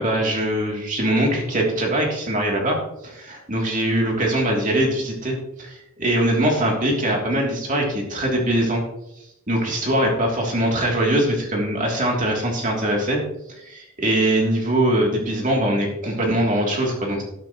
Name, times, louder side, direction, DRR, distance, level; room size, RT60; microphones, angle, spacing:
voice 1, 0.0-2.8 3.0-8.8 9.5-13.2 13.6-17.2, right 1 dB, 35° right, -1 dB, 3.1 m, -22 dB
12.5 x 11.0 x 3.1 m, 0.85 s
head